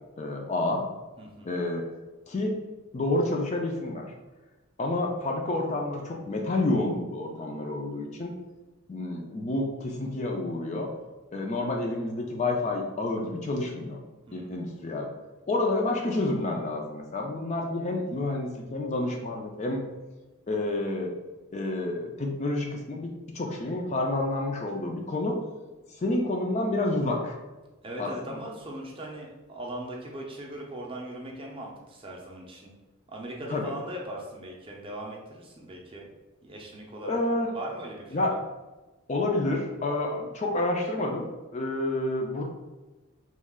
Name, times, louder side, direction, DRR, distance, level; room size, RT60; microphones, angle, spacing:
voice 1, 0.2-0.8 1.4-1.8 2.3-2.6 2.9-4.0 4.8-8.3 8.9-10.9 11.3-14.0 14.3-15.1 15.5-19.8 20.5-21.1 21.5-25.4 25.9-27.4 28.0-28.4 33.5-33.7 37.0-37.5 38.1-38.3 39.1-41.3 41.5-42.4, left 2 dB, 30° left, 1 dB, 0.3 m, -29 dB
voice 2, 1.2-1.5 14.3-14.5 27.8-32.7 33.1-36.1 36.4-37.2 37.5-38.2, right 1 dB, 25° right, -1 dB, 0.5 m, -39 dB
3.1 x 2.3 x 3.6 m, 1.1 s
head